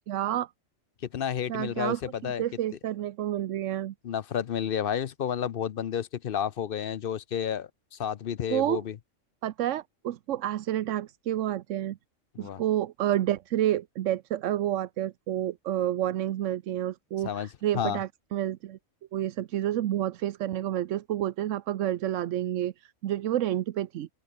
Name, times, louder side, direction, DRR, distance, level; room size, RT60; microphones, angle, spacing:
voice 1, 0.1-0.5 1.5-3.9 8.5-8.8 9.4-12.0 12.4-18.8 19.1-24.1, right 12 dB, 75° right, 1.0 m, -29 dB
voice 2, 1.1-2.4 4.0-9.0 12.4-12.6 17.2-17.5 17.7-18.0, left 9 dB, 55° left, 0.7 m, -31 dB
open air
omnidirectional pair, 1.3 m